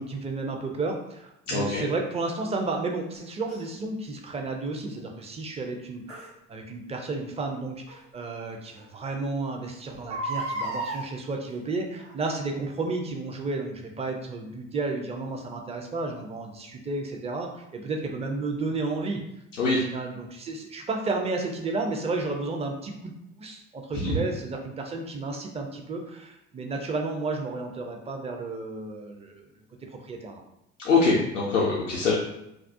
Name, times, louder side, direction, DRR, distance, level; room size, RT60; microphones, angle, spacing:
voice 1, 0.0-19.2 19.7-23.1 23.4-29.5 30.0-30.4, right 3 dB, 20° right, 2 dB, 0.4 m, -32 dB
voice 2, 1.5-1.8 19.6-19.8 23.9-24.2 30.8-32.1, left 3 dB, 90° left, -6 dB, 0.5 m, -23 dB
Crying sobbing, 3.5-3.6 6.1-6.3 7.9-8.0 8.5-8.6 8.8-8.9 9.9-11.0 12.0-12.3 12.9-13.0, right 1 dB, 80° right, 0.8 m, -32 dB
2.3 x 2.0 x 2.6 m, 0.84 s
figure-of-eight pair, 55°, 36 cm